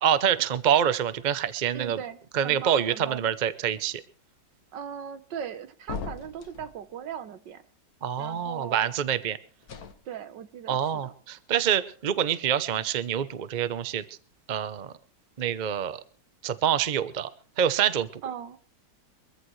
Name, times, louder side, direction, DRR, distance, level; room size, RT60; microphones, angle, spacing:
voice 1, 0.0-2.0 2.3-4.0 8.0-9.4 10.7-14.0 14.5-14.9 15.4-16.0 16.4-17.3 17.6-18.2, right 9 dB, 55° right, 14 dB, 0.5 m, -26 dB
voice 2, 1.7-3.3 4.7-7.6 8.2-8.9 10.1-11.1 18.2-18.6, right 8 dB, 75° right, 12 dB, 1.7 m, -39 dB
sound 1, 5.9-6.7 9.6-9.9, left 5 dB, 55° left, 1.6 m, -37 dB
23.5 x 14.5 x 3.2 m, 0.39 s
omnidirectional pair, 2.0 m